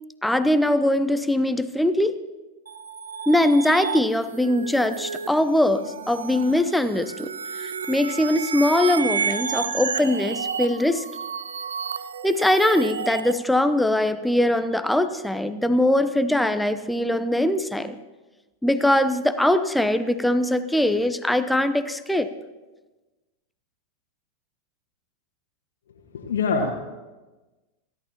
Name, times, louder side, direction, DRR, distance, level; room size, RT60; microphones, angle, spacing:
voice 1, 0.2-2.2 3.3-7.3 7.6-11.0 12.2-18.0 18.6-22.3, left 1 dB, 5° left, 11 dB, 0.7 m, -21 dB
sound 1, 2.7-13.3, right 6 dB, 70° right, 0.5 m, -31 dB
voice 2, 26.1-26.7, left 5 dB, 60° left, 0 dB, 1.5 m, -24 dB
29.5 x 11.5 x 2.9 m, 1.2 s
figure-of-eight pair, 90°, 0 cm